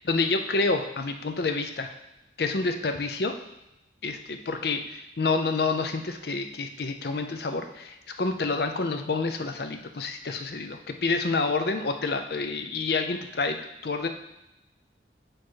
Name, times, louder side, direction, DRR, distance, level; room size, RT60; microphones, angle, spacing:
voice 1, 0.0-1.9 2.4-3.3 4.0-13.6 13.8-14.1, left 3 dB, 60° left, 6 dB, 0.6 m, -28 dB
8.4 x 3.1 x 4.6 m, 0.88 s
head